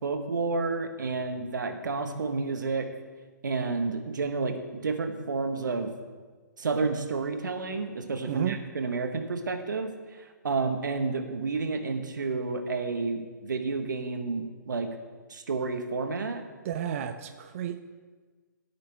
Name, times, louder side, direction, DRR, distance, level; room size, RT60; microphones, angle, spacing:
voice 1, 0.0-2.9 3.4-5.9 6.6-9.9 10.2-14.9 15.3-16.4, right 4 dB, 70° right, 6 dB, 1.6 m, -30 dB
voice 2, 8.3-8.6 16.6-17.8, right 10 dB, 45° right, 9 dB, 0.7 m, -32 dB
16.0 x 8.9 x 3.6 m, 1.4 s
figure-of-eight pair, 130°, 10 cm